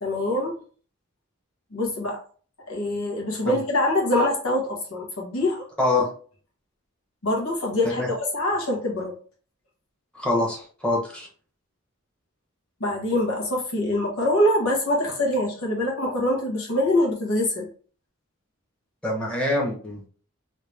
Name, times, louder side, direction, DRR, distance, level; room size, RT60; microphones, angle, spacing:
voice 1, 0.0-0.5 1.7-2.2 2.7-5.6 7.2-9.1 12.8-17.7, left 1 dB, 85° left, -1 dB, 1.3 m, -24 dB
voice 2, 10.1-11.3 19.0-20.1, left 2 dB, 5° left, -2 dB, 1.0 m, -25 dB
3.3 x 2.8 x 3.3 m, 0.42 s
head